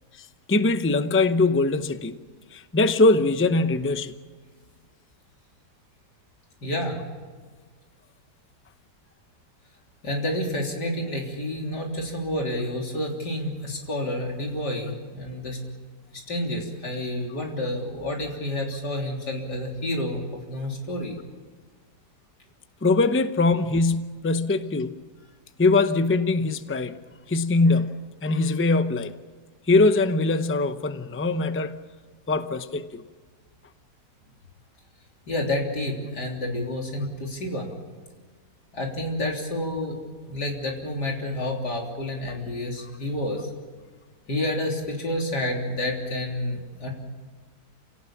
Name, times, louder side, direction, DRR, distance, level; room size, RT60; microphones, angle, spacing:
voice 1, 0.2-2.2 2.5-4.2 22.8-24.9 25.6-27.0 27.3-29.2 29.7-31.8 32.3-33.0 42.8-42.9, left 3 dB, 15° left, 0.5 m, -22 dB
voice 2, 6.6-7.0 10.0-15.6 16.1-21.2 35.3-37.7 38.7-40.0 40.3-43.5 44.3-46.9, left 1 dB, 75° left, 4.1 m, -29 dB
28.5 x 18.0 x 7.3 m
omnidirectional pair, 1.8 m